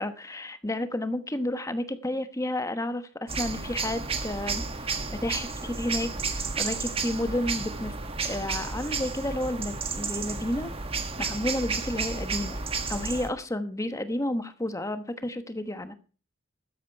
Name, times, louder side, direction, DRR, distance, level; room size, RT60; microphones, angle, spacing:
voice 1, 0.0-4.6 5.2-7.9 8.2-10.7 11.2-12.6 12.9-15.9, left 1 dB, 15° left, 10 dB, 1.1 m, -31 dB
sound 1, 3.3-13.3, right 4 dB, 30° right, 1.5 m, -32 dB
13.0 x 9.8 x 4.6 m, 0.37 s
head